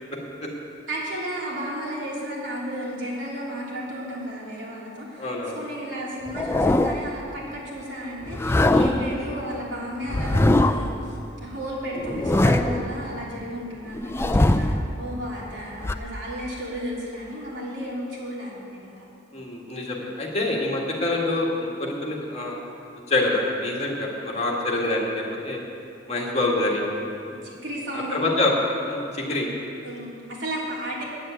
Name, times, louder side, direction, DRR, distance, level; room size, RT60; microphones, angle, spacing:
voice 1, 0.9-19.1 27.3-28.2 29.8-31.0, equal, 75° right, -5 dB, 3.1 m, -33 dB
voice 2, 5.2-5.6 9.1-9.3 19.3-22.6 23.1-25.6 26.1-26.8 27.9-28.5 28.9-29.5, left 2 dB, 35° left, -2 dB, 1.9 m, -26 dB
sound 1, 6.3-7.1 8.2-9.2 10.1-11.0 12.0-12.9 13.9-14.8 15.8-15.9, left 1 dB, 15° left, 0.4 m, -21 dB
9.2 x 7.8 x 9.1 m, 2.7 s
head